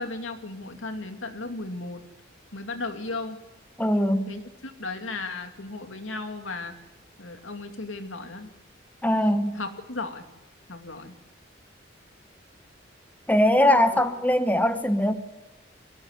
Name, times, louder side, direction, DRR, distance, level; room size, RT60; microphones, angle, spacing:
voice 1, 0.0-2.0 2.5-3.4 4.3-6.8 7.2-8.5 9.2-10.3 10.7-11.2 13.5-14.0, left 3 dB, 85° left, 6 dB, 2.6 m, -35 dB
voice 2, 3.8-4.3 9.0-9.6 13.3-15.1, left 1 dB, 10° left, 9 dB, 1.1 m, -21 dB
23.0 x 18.5 x 8.3 m, 1.1 s
head